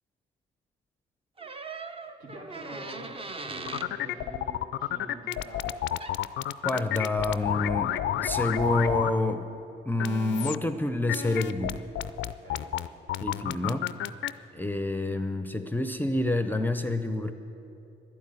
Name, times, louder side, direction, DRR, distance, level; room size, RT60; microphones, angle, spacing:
sound 1, 1.4-3.9 6.0-6.2, right 3 dB, 30° right, 0.7 m, -39 dB
voice 1, 2.2-3.1 3.4-5.9 12.2-12.7 13.4-13.5, right 1 dB, 70° right, -3 dB, 3.3 m, -45 dB
sound 2, 3.7-9.1 10.0-10.6 11.1-14.3, left 12 dB, 70° left, 0.4 m, -30 dB
voice 2, 6.6-9.5 9.8-11.8 13.2-13.8 14.5-17.3, left 2 dB, 10° left, 8 dB, 0.6 m, -28 dB
11.5 x 9.2 x 9.0 m, 2.9 s
cardioid pair, 90°, 20 cm